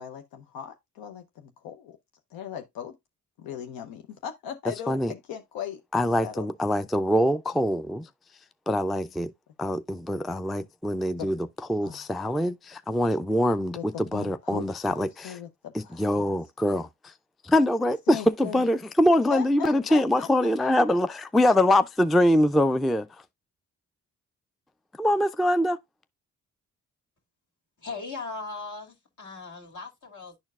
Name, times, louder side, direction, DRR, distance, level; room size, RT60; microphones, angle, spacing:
voice 1, 0.0-2.0 2.3-2.9 3.4-5.8 6.2-6.5 11.2-11.3 11.8-12.1 13.7-16.0 18.1-18.6 19.3-20.3, left 9 dB, 85° left, 0.6 m, -38 dB
voice 2, 5.9-8.1 8.7-9.3 9.6-15.4 15.7-17.1 17.4-23.2 25.0-25.8, left 1 dB, ahead, 0.3 m, -24 dB
voice 3, 27.8-30.4, left 3 dB, 55° left, 2.2 m, -38 dB
10.5 x 4.4 x 2.3 m
supercardioid pair, 50°, 35 cm